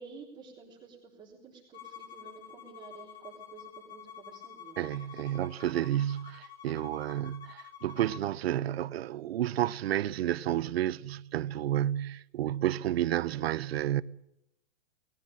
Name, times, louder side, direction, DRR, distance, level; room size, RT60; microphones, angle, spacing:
voice 1, 0.0-5.3, right 5 dB, 10° right, 3.5 m, -51 dB
Bowed string instrument, 1.7-8.3, left 9 dB, 60° left, 2.6 m, -49 dB
voice 2, 4.8-14.0, right 12 dB, 60° right, 0.8 m, -31 dB
20.0 x 15.0 x 10.0 m
supercardioid pair, 175°, 36 cm